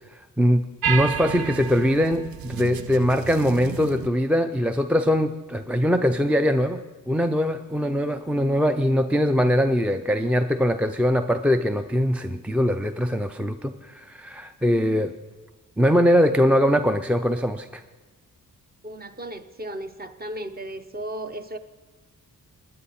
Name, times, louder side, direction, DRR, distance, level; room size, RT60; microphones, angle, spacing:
voice 1, 0.4-6.8 7.1-15.1 15.8-17.8, equal, 5° right, 9 dB, 0.4 m, -22 dB
sound 1, 0.8-4.1, right 9 dB, 85° right, 0.6 m, -31 dB
voice 2, 18.8-21.6, right 1 dB, 25° right, 9 dB, 0.8 m, -35 dB
19.5 x 9.6 x 4.3 m, 1.2 s
wide cardioid pair, 100°, 35 cm